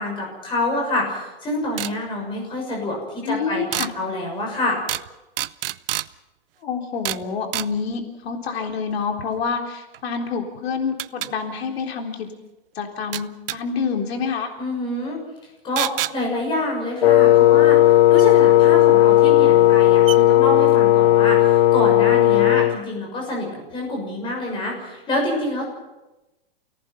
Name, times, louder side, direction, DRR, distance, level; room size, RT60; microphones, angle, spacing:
voice 1, 0.0-3.0 3.2-3.6 3.9-4.8 14.6-15.2 15.6-17.8 18.1-25.7, left 1 dB, 15° left, 0 dB, 6.5 m, -26 dB
sound 1, 1.8-1.9 3.7-3.9 4.9-5.1 5.4-6.1 7.0-7.2 7.5-7.7 9.9-10.0 11.0-11.3 13.1-13.6 15.8-16.1 18.2-18.3 19.2-19.3 19.7-19.8 20.1-20.2, right 13 dB, 65° right, 0.7 m, -27 dB
voice 2, 3.2-3.9 6.6-12.3 12.8-14.5, left 5 dB, 90° left, 3 dB, 3.8 m, -27 dB
Wind instrument woodwind instrument, 17.0-22.8, left 14 dB, 75° left, 0.8 m, -14 dB
29.0 x 18.0 x 5.9 m, 1.0 s
supercardioid pair, 175°, 30 cm